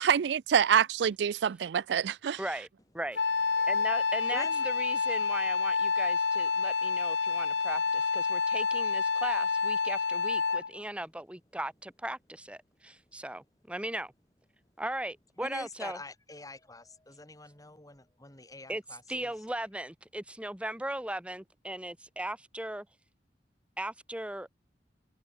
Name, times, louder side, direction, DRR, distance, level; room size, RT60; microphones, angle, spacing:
voice 1, 0.0-2.4, right 8 dB, 70° right, 0.4 m, -26 dB
voice 2, 2.4-2.7 2.9-3.2 3.7-14.1 14.8-16.0 18.7-18.8 19.1-22.9 23.8-24.5, right 1 dB, 5° right, 1.1 m, -38 dB
Wind instrument woodwind instrument, 3.2-10.8, left 4 dB, 90° left, 1.4 m, -28 dB
voice 3, 4.3-4.7 15.4-19.3, left 2 dB, 20° left, 7.5 m, -45 dB
head